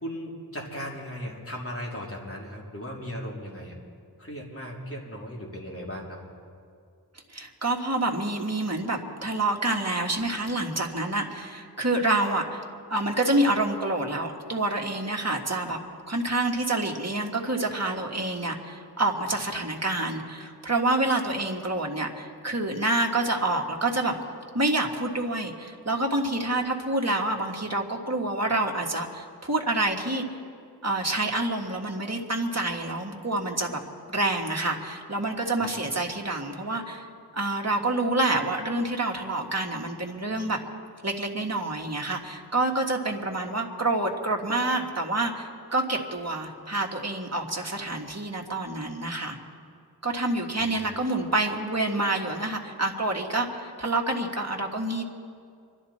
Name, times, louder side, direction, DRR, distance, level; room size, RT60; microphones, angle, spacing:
voice 1, 0.0-3.7 4.2-6.2 35.6-35.7 50.6-50.7, equal, 35° left, -3 dB, 3.2 m, -37 dB
voice 2, 7.3-12.6 12.9-15.8 16.1-24.2 24.5-30.2 30.8-33.8 34.1-37.1 37.3-40.6 41.0-49.4 50.0-55.0, right 2 dB, 40° right, 1 dB, 1.8 m, -27 dB
26.0 x 12.0 x 4.3 m, 2.3 s
wide cardioid pair, 45°, 40 cm